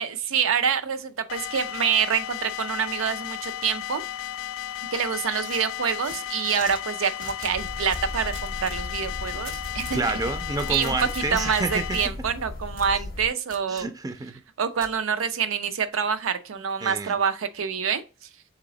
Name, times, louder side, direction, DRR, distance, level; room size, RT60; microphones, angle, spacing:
voice 1, 0.0-4.0 4.9-10.0 10.7-13.9 14.6-18.0, right 7 dB, 90° right, 0.5 m, -26 dB
sound 1, 1.3-12.1, left 12 dB, 85° left, 0.3 m, -34 dB
sound 2, 5.4-6.8 7.2-8.8 9.4-10.0 10.4-12.1 12.8-12.9 13.5-13.9 14.8-14.9, right 4 dB, 65° right, 1.0 m, -43 dB
sound 3, 7.5-13.3, left 1 dB, 50° left, 0.6 m, -36 dB
voice 2, 9.9-12.0 13.7-14.4 16.8-17.1, right 3 dB, 20° right, 0.4 m, -29 dB
4.0 x 2.9 x 3.8 m
head